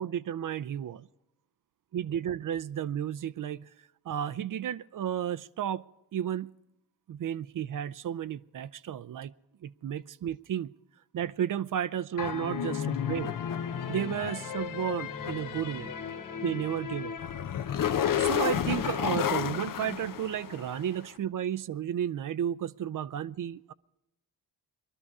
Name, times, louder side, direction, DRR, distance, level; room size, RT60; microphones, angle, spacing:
voice 1, 0.0-1.1 1.9-3.7 4.1-5.8 6.1-6.5 7.1-9.3 9.6-10.7 11.1-13.4 13.9-15.9 16.4-17.2 18.2-23.7, right 10 dB, 55° right, 0.6 m, -33 dB
sound 1, 12.2-20.9, left 9 dB, 55° left, 0.8 m, -32 dB
sound 2, 12.8-17.5, left 4 dB, 20° left, 0.9 m, -46 dB
20.0 x 12.5 x 4.8 m
cardioid pair, 60°, 39 cm